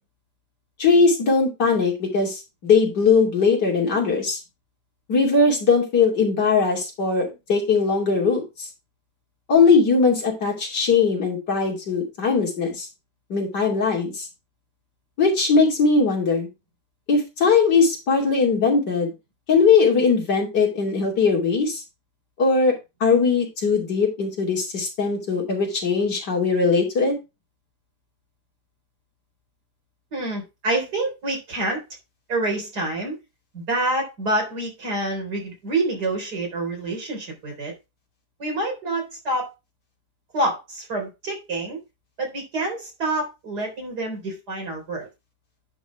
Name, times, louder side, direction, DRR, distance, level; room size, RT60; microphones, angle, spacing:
voice 1, 0.8-4.4 5.1-8.7 9.5-12.9 13.3-14.3 15.2-16.5 17.1-19.1 19.5-21.8 22.4-27.2, left 4 dB, 85° left, 3.3 m, -20 dB
voice 2, 30.1-31.8 32.3-33.2 33.5-37.7 38.4-39.5 40.3-41.8 42.2-45.1, right 2 dB, 70° right, 4.2 m, -27 dB
10.0 x 4.2 x 4.6 m
omnidirectional pair, 1.8 m